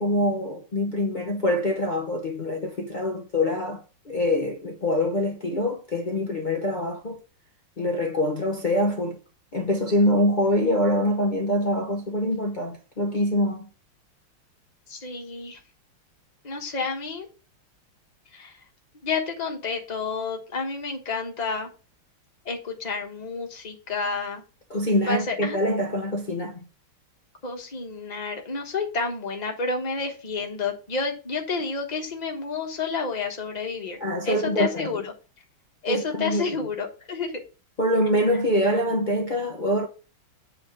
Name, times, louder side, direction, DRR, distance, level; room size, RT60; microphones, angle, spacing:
voice 1, 0.0-3.8 4.1-7.2 7.8-9.2 9.5-13.7 24.7-26.6 34.0-34.7 35.9-36.5 37.8-39.9, left 1 dB, 90° left, 0.4 m, -24 dB
voice 2, 14.9-15.6 16.4-17.3 18.3-18.6 19.0-21.7 22.4-24.4 25.1-25.6 27.4-34.0 34.2-35.1 35.8-37.4, left 4 dB, 25° left, 1.1 m, -30 dB
8.1 x 3.4 x 5.8 m
omnidirectional pair, 2.3 m